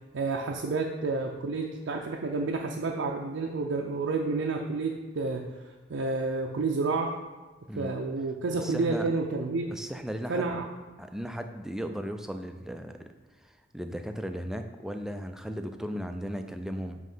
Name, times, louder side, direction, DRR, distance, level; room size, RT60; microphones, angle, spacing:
voice 1, 0.1-5.4 5.9-7.1 7.8-9.7 10.3-10.6, right 3 dB, 60° right, 0 dB, 0.5 m, -30 dB
voice 2, 8.5-9.1 9.7-10.6 11.0-13.1 13.4-17.0, equal, ahead, 6 dB, 0.3 m, -36 dB
7.4 x 3.1 x 5.4 m, 1.2 s
head